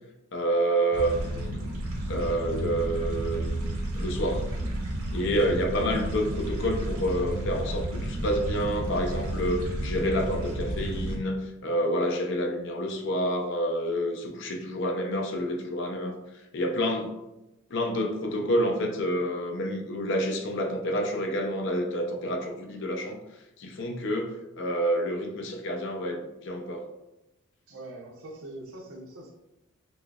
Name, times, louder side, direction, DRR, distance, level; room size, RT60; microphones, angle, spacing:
voice 1, 0.3-1.6 2.1-4.5 5.1-16.2 16.5-17.1 17.7-23.2 23.6-26.8, equal, 55° left, 3 dB, 0.5 m, -28 dB
sound 1, 0.9-11.2, right 1 dB, 85° right, 1.0 m, -32 dB
voice 2, 27.7-29.3, right 1 dB, 70° right, -2 dB, 0.6 m, -42 dB
6.0 x 2.0 x 2.2 m, 0.94 s
head